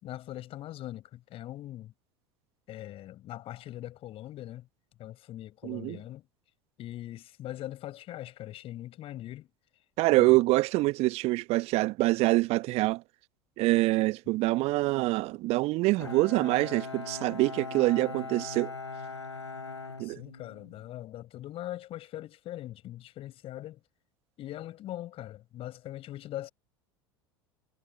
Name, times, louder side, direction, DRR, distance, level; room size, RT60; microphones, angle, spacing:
voice 1, 0.0-1.9 2.7-4.7 5.0-6.3 6.8-9.5 10.1-10.4 20.0-23.8 24.4-26.5, left 14 dB, 45° left, 4.7 m, -41 dB
voice 2, 5.6-6.0 10.0-13.0 13.6-18.7 20.0-20.2, right 20 dB, 50° right, 1.0 m, -25 dB
Bowed string instrument, 16.0-20.8, left 4 dB, 85° left, 1.1 m, -40 dB
figure-of-eight pair, 75°, 14 cm